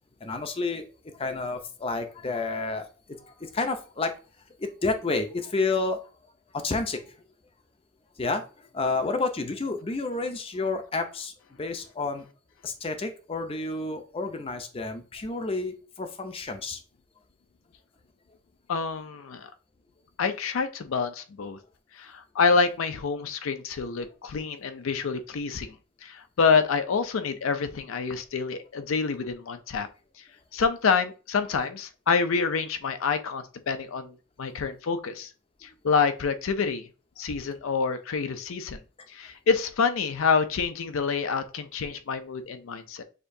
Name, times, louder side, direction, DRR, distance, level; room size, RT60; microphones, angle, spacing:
voice 1, 0.2-2.9 3.2-4.1 4.6-7.1 8.2-12.3 12.6-16.8, left 3 dB, 25° left, 7 dB, 0.5 m, -30 dB
voice 2, 18.7-19.5 20.2-21.6 22.0-25.8 26.0-29.9 30.5-35.3 35.6-36.9 37.2-38.8 39.1-43.0, left 5 dB, 80° left, 9 dB, 0.5 m, -27 dB
6.6 x 2.7 x 2.6 m, 0.36 s
head